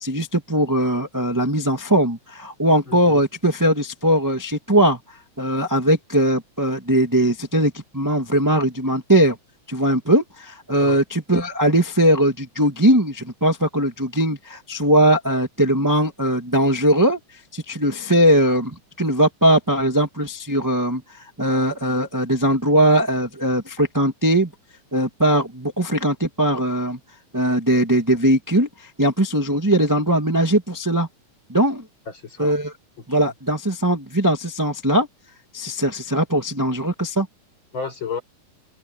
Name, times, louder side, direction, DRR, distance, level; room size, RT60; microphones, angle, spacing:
voice 1, 0.0-5.0 5.4-9.4 9.7-17.2 17.5-21.0 21.4-24.5 24.9-27.0 27.3-31.1 31.5-31.8 32.4-32.7 33.1-35.1 35.5-37.3, right 1 dB, 10° right, 1.4 m, -20 dB
voice 2, 2.9-3.2 10.8-11.0 32.1-32.6 33.1-33.2 37.7-38.2, left 5 dB, 35° left, 5.2 m, -32 dB
omnidirectional pair, 3.6 m